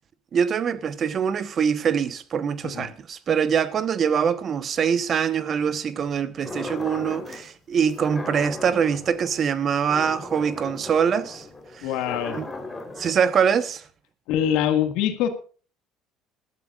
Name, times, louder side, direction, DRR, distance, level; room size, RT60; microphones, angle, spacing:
voice 1, 0.3-11.5 11.8-11.9 12.3-12.5 13.0-13.8, right 7 dB, 45° right, 1.1 m, -24 dB
sound 1, 6.4-7.5 7.9-13.1, left 2 dB, 10° left, 3.6 m, -37 dB
voice 2, 11.8-12.4 14.3-15.3, left 10 dB, 75° left, 1.9 m, -23 dB
21.0 x 12.5 x 2.5 m
supercardioid pair, 80°, 0 cm